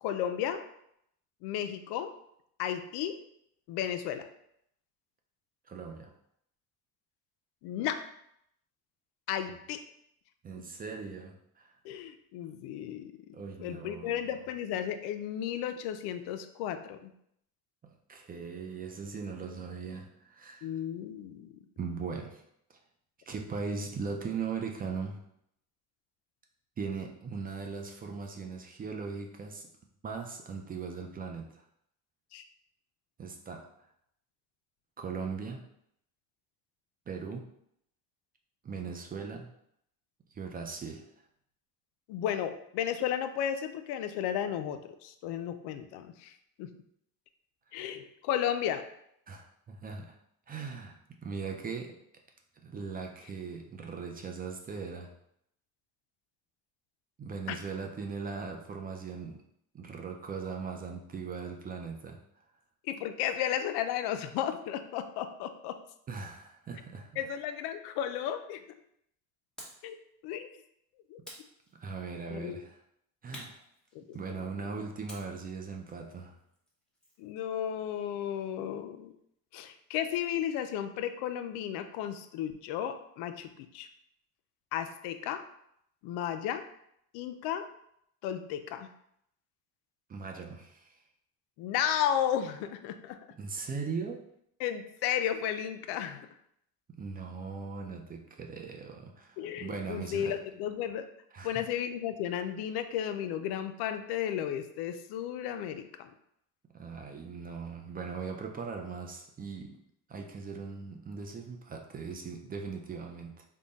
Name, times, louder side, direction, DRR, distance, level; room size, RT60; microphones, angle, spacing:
voice 1, 0.0-0.6 1.4-2.1 2.6-3.2 3.7-4.3 7.6-8.0 9.3-9.8 11.8-13.1 13.6-17.1 20.6-21.5 32.3-32.4 42.1-46.3 46.6-46.7 47.7-48.8 57.5-57.6 62.9-65.8 67.2-68.6 69.8-70.0 70.2-70.5 71.1-71.2 72.3-72.6 73.9-74.4 77.2-79.1 79.5-83.9 84.7-85.4 86.0-86.6 87.1-87.7 88.2-88.9 91.6-93.2 94.6-96.3 99.4-101.1 101.4-106.1, left 10 dB, 85° left, 9 dB, 0.5 m, -34 dB
voice 2, 5.7-6.1 10.4-11.7 13.3-14.4 17.8-20.7 21.8-22.4 22.7-22.8 23.3-25.2 26.8-29.7 30.0-31.6 33.2-33.7 35.0-35.6 37.1-37.5 38.6-39.5 40.3-41.1 49.3-50.2 50.5-52.0 52.6-55.1 57.2-59.4 59.7-62.2 66.1-67.3 71.7-72.8 73.2-73.6 74.1-76.4 90.1-90.9 93.4-94.3 96.9-100.3 101.3-101.6 106.7-109.8 110.1-113.4, right 5 dB, 25° right, 3 dB, 0.3 m, -39 dB
sound 1, 69.6-69.9 71.2-72.2 73.3-74.4 75.1-77.3, equal, ahead, 0.9 m, -51 dB
3.7 x 2.1 x 3.9 m, 0.73 s
cardioid pair, 125°, 38 cm